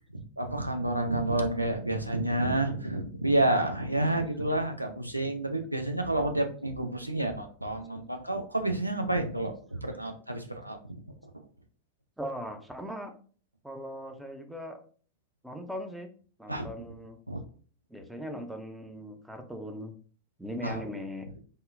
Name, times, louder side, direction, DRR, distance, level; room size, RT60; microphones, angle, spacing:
voice 1, 0.1-11.0 16.5-16.7 17.3-17.4 20.6-20.8, right 1 dB, 85° right, 5 dB, 0.4 m, -29 dB
voice 2, 12.2-13.1 13.6-14.8 15.4-16.1 16.4-17.2 17.9-19.9 20.4-21.3, equal, 5° right, 6 dB, 0.4 m, -39 dB
3.6 x 2.0 x 2.4 m, 0.43 s
figure-of-eight pair, 90°, 0 cm